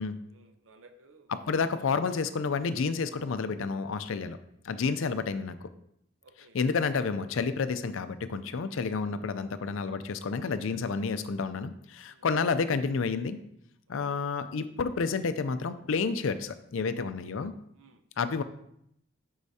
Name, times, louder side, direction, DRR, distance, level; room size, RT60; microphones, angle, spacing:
voice 1, 0.3-1.3 4.7-5.0 6.2-6.6 12.1-12.3 13.9-14.2 17.8-18.0, right 3 dB, 65° right, 7 dB, 0.7 m, -58 dB
voice 2, 1.3-4.4 4.6-5.7 6.5-13.4 13.9-17.5 18.2-18.4, left 5 dB, 70° left, 11 dB, 0.4 m, -30 dB
8.1 x 5.5 x 2.8 m, 0.74 s
head